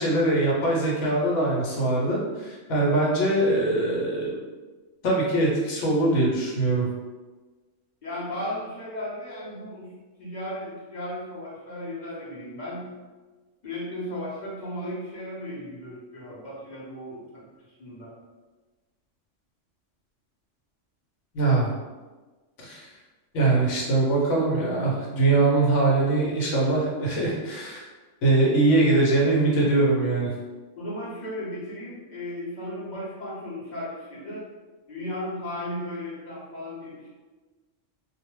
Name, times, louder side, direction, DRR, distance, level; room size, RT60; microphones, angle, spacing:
voice 1, 0.0-4.3 5.0-6.9 21.3-21.7 22.6-22.9 23.3-27.8 28.2-30.3, right 2 dB, 75° left, -3 dB, 1.0 m, -22 dB
voice 2, 8.0-9.9 10.2-12.9 13.6-18.1 30.8-34.5 34.9-37.1, left 1 dB, 40° left, -7 dB, 0.8 m, -35 dB
2.4 x 2.1 x 3.0 m, 1.3 s
omnidirectional pair, 1.3 m